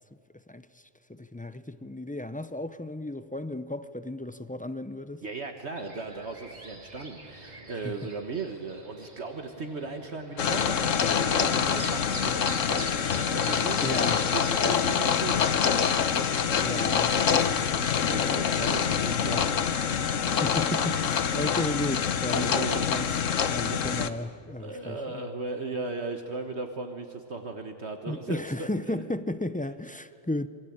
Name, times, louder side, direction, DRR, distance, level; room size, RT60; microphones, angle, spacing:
voice 1, 0.5-0.8 1.1-5.2 7.8-8.0 13.8-14.3 16.6-17.5 20.3-23.1 23.5-25.2 28.1-30.5, left 1 dB, 10° left, 0.3 m, -34 dB
voice 2, 5.2-16.0 16.4-17.2 17.7-19.6 20.9-21.5 22.3-22.8 23.7-23.8 24.6-29.0, right 3 dB, 50° right, 1.7 m, -37 dB
sound 1, 5.7-18.9, right 1 dB, 30° right, 2.9 m, -45 dB
sound 2, 10.4-24.1, left 7 dB, 65° left, 1.4 m, -26 dB
27.0 x 23.5 x 8.7 m
omnidirectional pair, 1.4 m